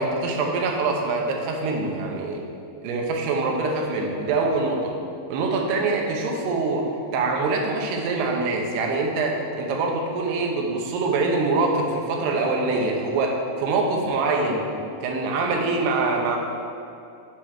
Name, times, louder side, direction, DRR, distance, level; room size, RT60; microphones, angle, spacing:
voice 1, 0.0-2.4 2.8-4.9 5.3-6.9 7.1-14.7 15.0-16.4, right 3 dB, 85° right, 1 dB, 3.0 m, -24 dB
7.8 x 4.4 x 6.3 m, 2.6 s
omnidirectional pair, 4.6 m